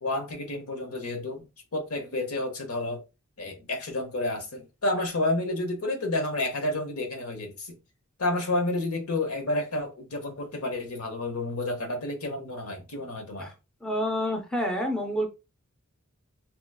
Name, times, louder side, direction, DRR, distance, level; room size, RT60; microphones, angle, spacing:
voice 1, 0.0-1.5 1.7-3.0 3.4-7.7 8.2-13.5, left 2 dB, 70° left, 1.0 m, -30 dB
voice 2, 13.8-15.3, equal, 5° left, 0.5 m, -28 dB
3.8 x 3.0 x 2.2 m
head